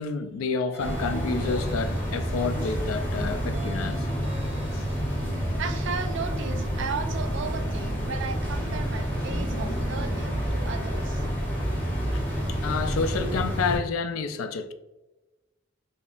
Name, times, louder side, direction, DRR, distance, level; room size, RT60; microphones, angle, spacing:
voice 1, 0.0-4.1 4.7-4.8 12.1-12.2 12.5-14.7, left 4 dB, 85° left, 0.4 m, -29 dB
sound 1, 0.7-2.5 3.5-5.3, right 2 dB, 30° right, 0.8 m, -46 dB
sound 2, 0.8-13.8, equal, 10° left, 0.8 m, -29 dB
sound 3, 0.9-2.1 2.5-4.6 5.0-6.2 6.6-8.6 9.0-10.2, right 1 dB, 40° left, 1.2 m, -42 dB
voice 2, 5.6-11.2, right 5 dB, 60° right, 0.4 m, -35 dB
4.1 x 2.8 x 2.4 m
head